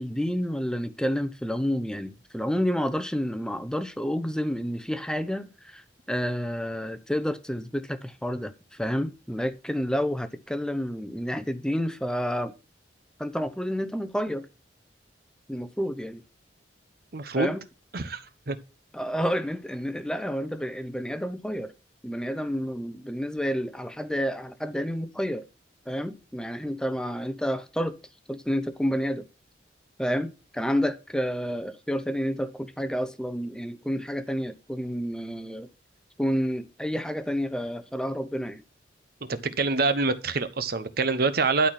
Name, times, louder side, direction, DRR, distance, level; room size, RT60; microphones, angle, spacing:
voice 1, 0.0-12.5 13.2-14.5 15.5-16.2 17.4-17.6 18.9-21.7 22.0-25.5 25.9-28.0 28.3-29.3 30.0-35.7 36.2-38.6, equal, 5° left, 0.7 m, -29 dB
voice 2, 17.1-17.5 17.9-18.2 18.5-18.6 39.2-41.7, right 3 dB, 55° right, 1.0 m, -25 dB
11.5 x 4.2 x 5.8 m
head